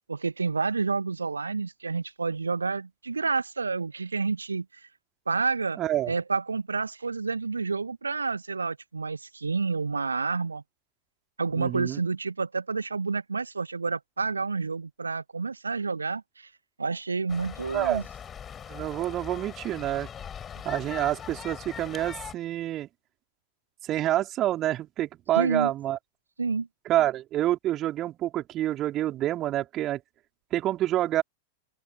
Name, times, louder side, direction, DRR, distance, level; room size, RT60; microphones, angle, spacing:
voice 1, 0.1-4.6 5.3-5.8 6.1-10.6 11.4-16.5 16.8-18.0 25.3-25.7 26.4-26.7, right 4 dB, 75° right, 1.5 m, -29 dB
voice 2, 5.8-6.1 11.5-12.0 17.7-18.0 18.7-20.1 20.6-22.9 23.8-26.0 26.9-30.0 30.5-31.2, right 13 dB, 35° right, 4.6 m, -27 dB
sound 1, 17.3-22.3, left 8 dB, 25° left, 4.9 m, -41 dB
open air
figure-of-eight pair, 90°, 0 cm